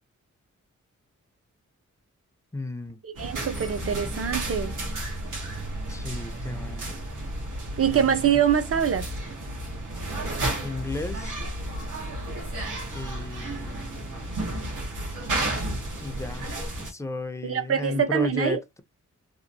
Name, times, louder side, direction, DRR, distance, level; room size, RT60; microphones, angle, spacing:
voice 1, 2.5-3.0 5.9-7.0 7.8-8.1 10.6-11.4 12.9-14.2 16.0-16.5 16.8-18.8, left 2 dB, 10° left, 0.5 m, -34 dB
voice 2, 3.0-4.8 7.8-9.1 17.4-18.6, right 8 dB, 50° right, 0.6 m, -24 dB
sound 1, 3.2-16.9, right 1 dB, 90° right, 1.0 m, -32 dB
2.9 x 2.0 x 2.5 m
wide cardioid pair, 105°, 30 cm